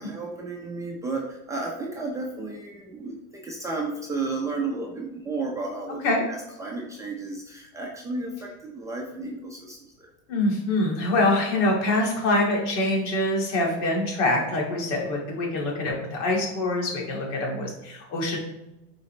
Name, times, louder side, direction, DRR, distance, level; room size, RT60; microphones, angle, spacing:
voice 1, 0.0-6.0 6.3-10.1, right 3 dB, 10° right, -2 dB, 0.5 m, -33 dB
voice 2, 10.3-18.4, left 2 dB, 65° left, -2 dB, 2.4 m, -25 dB
9.0 x 4.1 x 3.2 m, 0.95 s
supercardioid pair, 145°, 39 cm